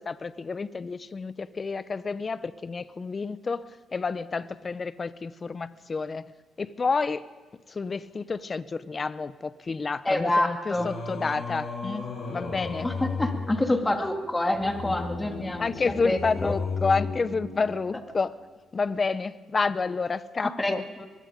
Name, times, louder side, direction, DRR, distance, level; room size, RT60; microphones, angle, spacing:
voice 1, 0.0-6.3 6.6-7.2 7.7-12.9 15.6-18.3 18.7-20.8, left 4 dB, 35° left, 15 dB, 0.8 m, -29 dB
voice 2, 10.0-10.9 12.8-15.7 16.0-16.5 20.4-21.1, left 1 dB, 15° left, 4 dB, 2.4 m, -27 dB
Singing, 10.7-18.1, left 4 dB, 50° left, 7.8 m, -34 dB
23.0 x 21.5 x 5.2 m, 1.3 s
cardioid pair, 90°, 0 cm